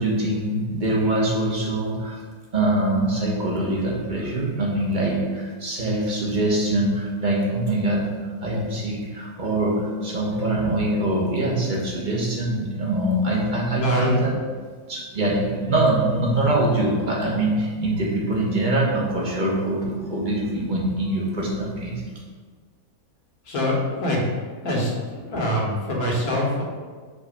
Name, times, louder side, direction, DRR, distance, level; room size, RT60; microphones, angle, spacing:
voice 1, 0.0-2.2 2.5-14.3 14.9-22.0, right 1 dB, 35° right, -3 dB, 1.3 m, -23 dB
voice 2, 13.8-14.1 23.5-24.3 24.6-26.6, left 1 dB, 70° left, -3 dB, 1.8 m, -24 dB
5.4 x 4.0 x 5.2 m, 1.5 s
omnidirectional pair, 1.6 m